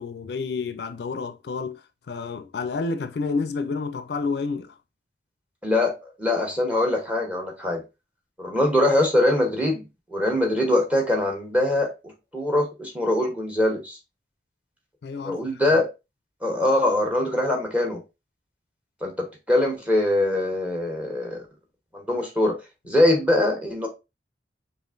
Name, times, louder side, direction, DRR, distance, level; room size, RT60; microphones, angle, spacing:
voice 1, 0.0-4.8 15.0-15.6, left 4 dB, 70° left, 0.4 m, -30 dB
voice 2, 5.6-7.8 8.4-9.8 10.1-14.0 15.2-15.9 16.4-18.0 19.0-21.4 21.9-22.6 22.9-23.9, left 1 dB, 10° right, 0.9 m, -23 dB
4.9 x 2.5 x 2.4 m
head